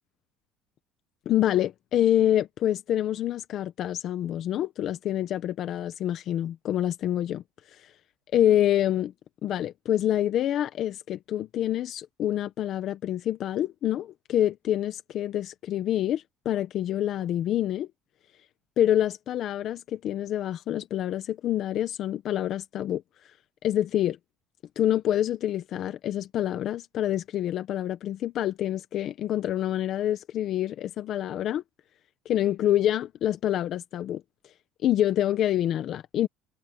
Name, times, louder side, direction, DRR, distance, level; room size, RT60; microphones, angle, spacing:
voice 1, 1.2-7.4 8.3-9.1 9.4-17.9 18.8-23.0 23.6-24.2 24.8-31.6 32.2-34.2 34.8-36.3, left 12 dB, 50° left, 1.2 m, -26 dB
cardioid pair, 140°, 0 cm